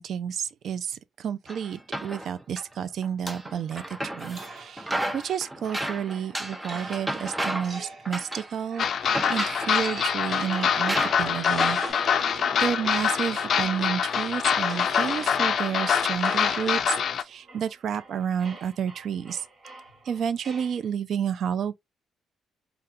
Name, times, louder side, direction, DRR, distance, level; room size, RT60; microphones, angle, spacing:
voice 1, 0.0-11.8 12.3-19.4 20.1-21.8, right 8 dB, 65° right, 0.4 m, -31 dB
sound 1, 1.5-2.6 3.0-4.5 4.8-7.8 8.1-8.5 8.8-9.9 10.4-10.5 10.9-11.9, right 1 dB, 10° right, 0.6 m, -33 dB
sound 2, 4.4-14.2 14.6-20.8, right 3 dB, 40° right, 1.2 m, -43 dB
sound 3, 8.8-17.2, left 7 dB, 60° left, 0.4 m, -25 dB
3.6 x 2.3 x 2.5 m
cardioid pair, 90°, 0 cm